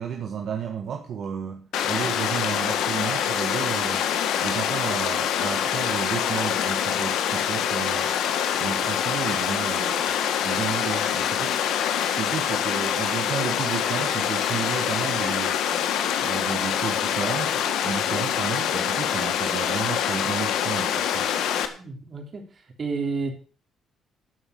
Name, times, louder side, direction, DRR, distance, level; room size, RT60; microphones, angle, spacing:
voice 1, 0.0-4.1 4.4-8.2 8.6-10.1 10.4-11.6 12.1-15.6 16.2-21.3, right 7 dB, 65° right, 1.6 m, -32 dB
Water, 1.7-21.7, left 9 dB, 85° left, 1.5 m, -25 dB
voice 2, 21.7-22.5 22.8-23.3, right 4 dB, 45° right, 3.5 m, -30 dB
12.5 x 5.5 x 8.5 m
cardioid pair, 90°, 0 cm